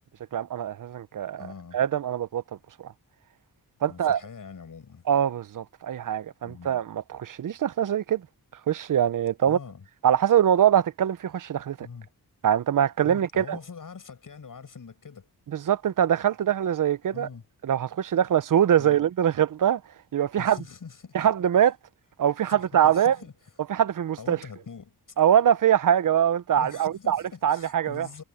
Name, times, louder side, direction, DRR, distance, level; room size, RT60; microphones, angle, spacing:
voice 1, 0.3-1.5 1.7-2.4 2.8-2.9 3.8-4.2 5.1-8.2 8.7-9.6 10.0-11.9 12.4-13.6 15.5-17.3 17.6-19.8 20.1-20.6 21.1-21.8 22.2-23.2 23.7-24.4 25.2-28.2, right 9 dB, 55° right, 0.6 m, -23 dB
voice 2, 1.4-1.8 3.9-5.1 6.4-6.7 9.4-9.8 11.8-12.1 13.0-15.3 17.1-17.4 18.8-19.0 20.4-21.1 22.5-23.3 24.2-25.0 26.6-28.2, left 5 dB, 55° left, 7.9 m, -43 dB
wide cardioid pair, 125°, 37 cm